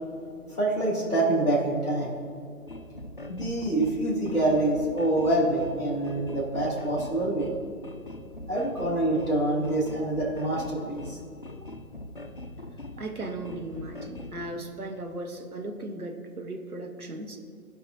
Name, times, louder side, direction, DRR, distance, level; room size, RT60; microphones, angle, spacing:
voice 1, 0.5-2.1 3.3-7.5 8.5-11.2, right 2 dB, ahead, -19 dB, 1.5 m, -26 dB
sound 1, 2.7-14.5, left 2 dB, 35° left, 0.6 m, -42 dB
voice 2, 13.0-17.4, right 2 dB, 75° right, 3 dB, 1.3 m, -37 dB
16.0 x 5.4 x 2.7 m, 2.4 s
figure-of-eight pair, 150°, 45 cm